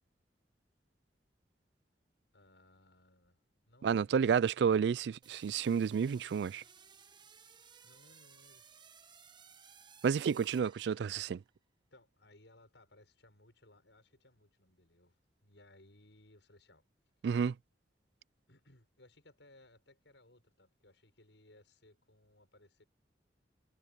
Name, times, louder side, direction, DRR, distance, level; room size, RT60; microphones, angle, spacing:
voice 1, 2.3-3.4 3.7-4.2 7.8-8.7 11.9-16.9 18.5-22.8, left 1 dB, 90° left, 7.0 m, -63 dB
voice 2, 3.8-6.6 10.0-11.4 17.2-17.5, right 7 dB, 70° right, 0.3 m, -30 dB
sound 1, 5.2-11.4, right 6 dB, 25° right, 1.1 m, -59 dB
head